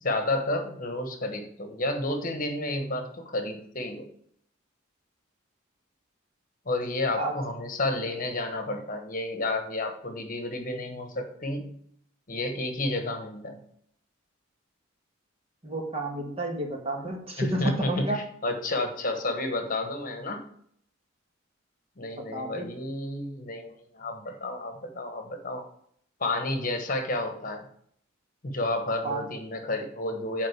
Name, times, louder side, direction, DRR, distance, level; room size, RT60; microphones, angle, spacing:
voice 1, 0.0-4.1 6.6-11.8 12.3-13.6 17.4-20.4 22.0-25.6 26.2-27.7 28.4-30.5, left 2 dB, 40° left, 5 dB, 1.2 m, -31 dB
voice 2, 15.6-18.2 22.2-22.7 29.0-29.2, right 1 dB, 30° right, 1 dB, 1.6 m, -31 dB
9.1 x 3.8 x 6.7 m, 0.65 s
head